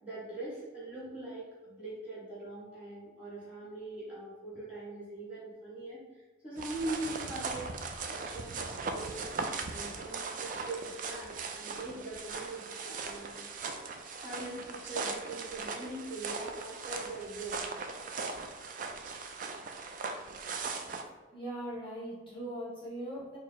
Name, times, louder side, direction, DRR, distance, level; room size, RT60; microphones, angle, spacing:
voice 1, 0.0-6.0 6.4-7.7 8.1-9.2 9.7-13.5 14.1-17.6, right 2 dB, 10° right, -9 dB, 1.4 m, -42 dB
sound 1, 6.6-21.0, right 4 dB, 40° right, 0.3 m, -39 dB
voice 2, 21.3-23.4, right 1 dB, 25° left, -8 dB, 0.9 m, -40 dB
4.6 x 2.0 x 3.9 m, 1.3 s
head